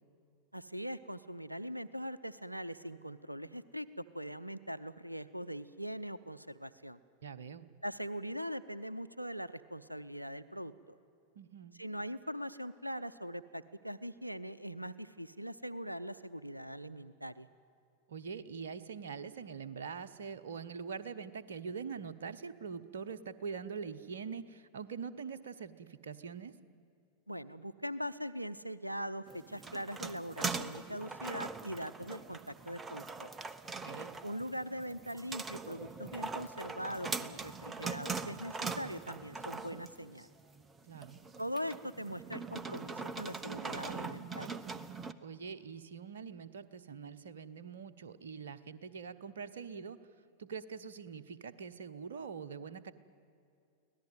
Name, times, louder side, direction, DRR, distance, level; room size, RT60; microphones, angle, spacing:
voice 1, 0.5-3.9 4.1-7.0 7.8-10.7 11.7-17.5 27.3-33.3 34.2-40.3 41.4-44.6, equal, 90° right, 16 dB, 0.6 m, -41 dB
voice 2, 7.2-7.7 11.3-11.8 18.1-26.5 33.9-34.2 40.9-41.2 45.2-50.0 50.4-52.9, right 6 dB, 65° right, 12 dB, 1.0 m, -44 dB
sound 1, 29.3-45.1, right 4 dB, 15° right, 0.9 m, -42 dB
24.5 x 18.0 x 9.3 m, 2.6 s
figure-of-eight pair, 90°, 0 cm